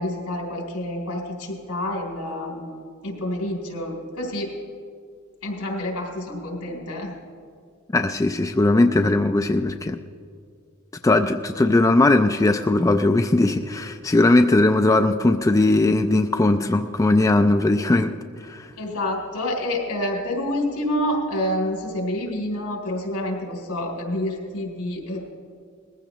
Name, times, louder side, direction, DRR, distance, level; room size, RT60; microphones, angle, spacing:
voice 1, 0.0-2.7 3.0-4.5 5.4-7.1 18.8-25.2, left 1 dB, 90° left, 0 dB, 3.3 m, -28 dB
voice 2, 7.9-10.0 11.0-18.1 18.4-18.7, left 2 dB, 15° left, 7 dB, 0.3 m, -19 dB
20.5 x 15.0 x 3.0 m, 2.2 s
head